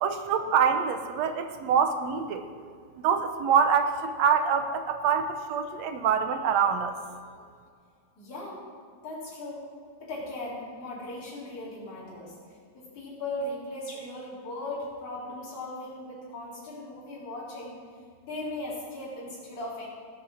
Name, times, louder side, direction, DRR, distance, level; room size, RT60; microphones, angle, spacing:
voice 1, 0.0-2.4 3.0-6.9, right 7 dB, 70° right, 8 dB, 1.9 m, -25 dB
voice 2, 8.2-8.6 9.0-9.6 10.0-12.3 12.7-17.7 18.2-19.9, left 1 dB, 80° left, -8 dB, 5.3 m, -38 dB
18.5 x 7.1 x 6.4 m, 2.1 s
omnidirectional pair, 3.4 m